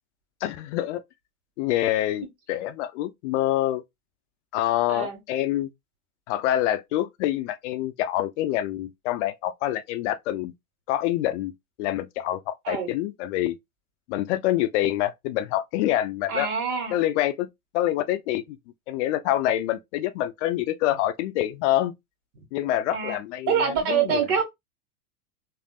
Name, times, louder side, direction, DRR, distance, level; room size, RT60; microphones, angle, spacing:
voice 1, 0.4-1.0 1.6-3.8 4.5-5.7 6.3-10.5 10.9-11.5 11.8-13.6 14.1-16.5 16.9-17.5 17.7-18.6 18.9-21.9 22.5-24.2, left 13 dB, 55° left, 0.5 m, -26 dB
voice 2, 16.3-17.0 22.4-22.5 22.9-23.2 23.5-24.4, right 7 dB, 55° right, 1.6 m, -25 dB
3.3 x 2.6 x 2.3 m
hypercardioid pair, 105°, 44 cm